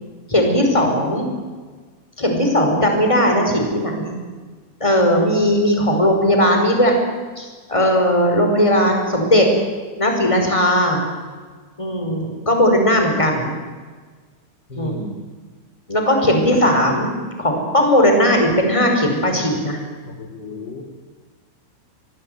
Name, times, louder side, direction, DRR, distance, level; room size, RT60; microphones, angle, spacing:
voice 1, 0.3-1.3 2.2-4.2 4.8-6.9 7.4-9.5 10.0-11.0 11.8-13.5 14.7-15.0 15.9-17.1 17.4-19.8, equal, 5° left, 3 dB, 4.6 m, -17 dB
voice 2, 14.7-15.1 20.1-20.8, left 2 dB, 30° left, 2 dB, 2.8 m, -33 dB
25.5 x 20.0 x 9.4 m, 1.5 s
omnidirectional pair, 5.7 m